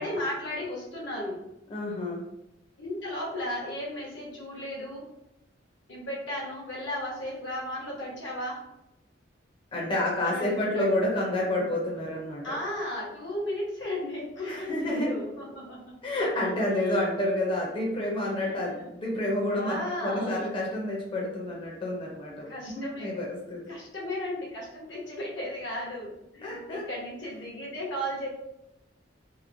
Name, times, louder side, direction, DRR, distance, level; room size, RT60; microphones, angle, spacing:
voice 1, 0.0-1.4 2.8-5.0 5.9-8.6 10.2-10.9 12.4-15.9 16.7-17.0 18.4-18.9 19.5-20.4 22.5-23.1 23.7-28.3, left 1 dB, 80° left, -4 dB, 1.0 m, -35 dB
voice 2, 1.7-2.2 9.7-12.6 14.4-15.1 16.0-22.5 22.7-23.7 26.4-26.8, left 1 dB, 30° left, -3 dB, 0.5 m, -29 dB
2.9 x 2.1 x 2.5 m, 0.87 s
head